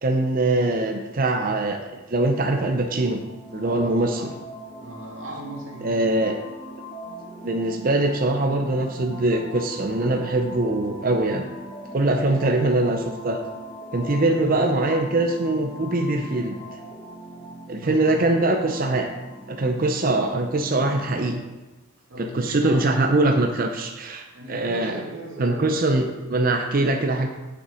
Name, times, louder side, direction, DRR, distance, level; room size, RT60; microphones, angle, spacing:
voice 1, 0.0-3.2 3.5-4.2 5.8-6.4 7.4-11.5 11.9-13.4 13.9-16.6 17.7-19.1 19.5-21.4 22.2-25.0 25.4-27.3, right 2 dB, 45° right, 3 dB, 0.6 m, -22 dB
sound 1, 2.2-21.4, equal, 30° left, 3.0 m, -40 dB
voice 2, 3.6-4.3 4.7-6.2 14.1-14.5 17.3-18.2 22.1-22.9 24.3-26.1, right 1 dB, 70° right, -2 dB, 2.2 m, -38 dB
7.6 x 7.1 x 5.0 m, 1.1 s
head